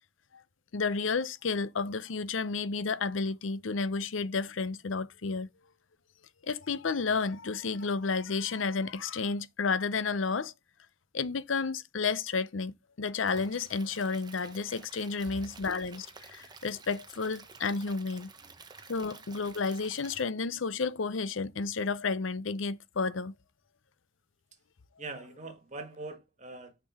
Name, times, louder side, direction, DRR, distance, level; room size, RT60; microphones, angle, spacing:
voice 1, 0.7-5.5 6.4-10.5 11.1-18.3 18.9-23.3, left 4 dB, 80° left, 0.7 m, -31 dB
Stream / Liquid, 13.3-20.2, right 4 dB, 20° right, 1.0 m, -51 dB
voice 2, 25.0-26.7, right 2 dB, 35° right, 1.7 m, -43 dB
6.4 x 5.9 x 3.6 m
head